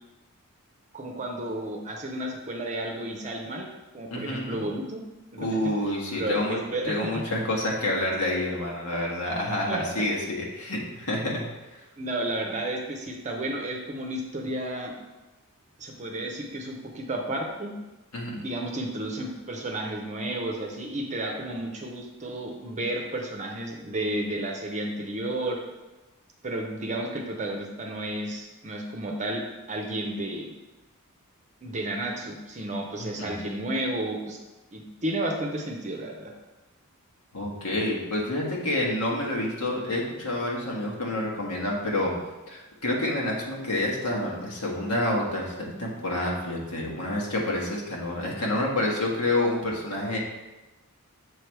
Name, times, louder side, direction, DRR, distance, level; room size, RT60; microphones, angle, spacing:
voice 1, 0.9-3.7 3.9-5.0 5.3-5.5 6.1-7.1 9.7-9.8 12.0-14.9 15.8-17.7 18.4-25.6 26.4-30.5 31.6-34.4 34.7-36.3, right 1 dB, 35° right, 1 dB, 0.7 m, -32 dB
voice 2, 4.1-4.6 5.4-6.6 6.8-11.4 11.7-11.8 18.1-18.4 33.1-33.3 37.3-42.1 42.5-50.2, left 1 dB, 85° left, -2 dB, 1.4 m, -28 dB
6.9 x 3.3 x 4.6 m, 1.1 s
head